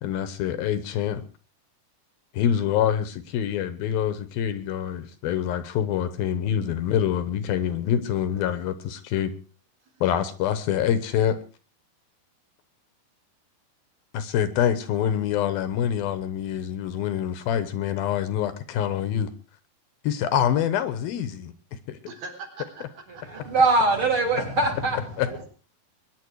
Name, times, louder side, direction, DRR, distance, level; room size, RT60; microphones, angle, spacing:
voice 1, 0.0-1.2 2.3-9.3 10.0-11.4 14.1-19.3 20.0-21.5 21.9-22.0 25.2-25.3, left 9 dB, 75° left, 2.7 m, -25 dB
voice 2, 22.1-23.4 25.2-25.5, right 4 dB, 70° right, 5.8 m, -42 dB
voice 3, 23.3-25.0, right 2 dB, 35° right, 3.8 m, -22 dB
22.5 x 10.0 x 4.7 m
omnidirectional pair, 4.6 m